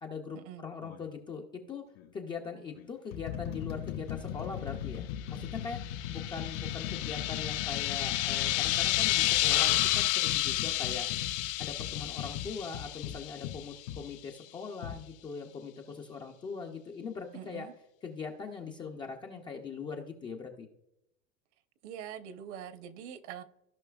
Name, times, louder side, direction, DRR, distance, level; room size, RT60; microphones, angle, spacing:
voice 1, 0.0-1.8 2.1-11.1 11.6-17.7 18.0-20.7, left 5 dB, 15° left, 0.3 m, -41 dB
sound 1, 0.8-1.1 1.9-2.1 2.7-14.0 14.8-15.0, left 10 dB, 75° left, 1.9 m, -39 dB
sound 2, 5.4-13.8, left 15 dB, 60° left, 0.9 m, -31 dB
voice 2, 17.3-17.7 21.8-23.4, right 9 dB, 60° right, 0.9 m, -44 dB
16.0 x 5.5 x 2.3 m
supercardioid pair, 135°, 41 cm